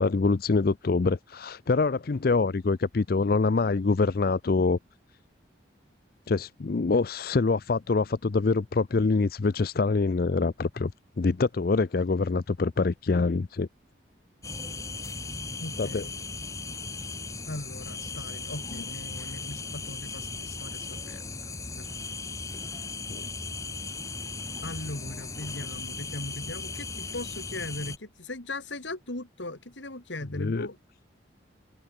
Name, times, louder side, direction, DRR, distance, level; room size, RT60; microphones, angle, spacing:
voice 1, 0.0-4.8 6.3-10.9 11.2-13.7 15.8-16.0 23.1-23.2 30.4-30.7, left 3 dB, 50° left, 0.5 m, -25 dB
sound 1, 14.4-28.0, left 3 dB, 15° left, 2.5 m, -37 dB
voice 2, 15.6-16.1 17.4-21.2 21.8-21.9 24.6-30.8, left 2 dB, 75° left, 3.2 m, -39 dB
head